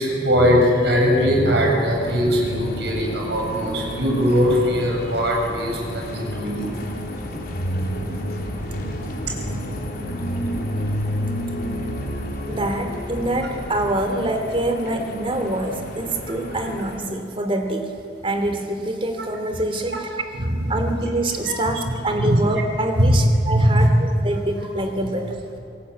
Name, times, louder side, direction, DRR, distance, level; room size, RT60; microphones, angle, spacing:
voice 1, 0.0-6.7 20.4-20.9 22.2-22.4 23.0-23.1 23.5-23.9, equal, 65° right, 0 dB, 7.2 m, -20 dB
sound 1, 0.8-17.0, equal, 55° left, 4.2 m, -30 dB
voice 2, 12.5-17.9 18.2-20.1 20.7-25.6, right 1 dB, 30° right, 5 dB, 3.0 m, -25 dB
28.5 x 19.0 x 8.6 m, 2.7 s
head